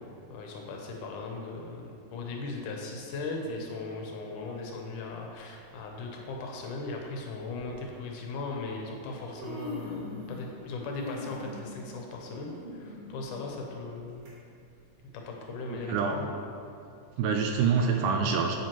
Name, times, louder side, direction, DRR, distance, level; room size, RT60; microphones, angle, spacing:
voice 1, 0.3-14.3 15.1-16.3, left 3 dB, 75° left, 0 dB, 2.1 m, -38 dB
Human voice, 5.7-5.8 6.8-6.9 7.5-7.7 8.7-8.8 9.1-10.5 10.8-14.3 14.7-14.8 15.7-15.8, left 2 dB, 60° right, 2.1 m, -42 dB
voice 2, 15.7-16.2 17.2-18.6, right 5 dB, 80° right, 3 dB, 1.9 m, -26 dB
7.8 x 7.0 x 3.0 m, 2.5 s
omnidirectional pair, 3.9 m